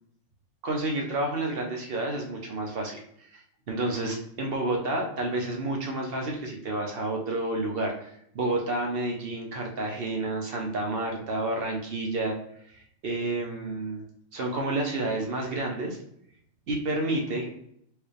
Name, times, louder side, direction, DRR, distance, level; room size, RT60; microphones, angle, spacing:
voice 1, 0.6-3.0 3.3-3.4 3.7-8.1 8.3-12.4 12.7-14.1 14.3-16.0 16.7-17.5, right 2 dB, 50° right, 1 dB, 0.8 m, -30 dB
4.7 x 2.3 x 3.2 m, 0.70 s
omnidirectional pair, 1.5 m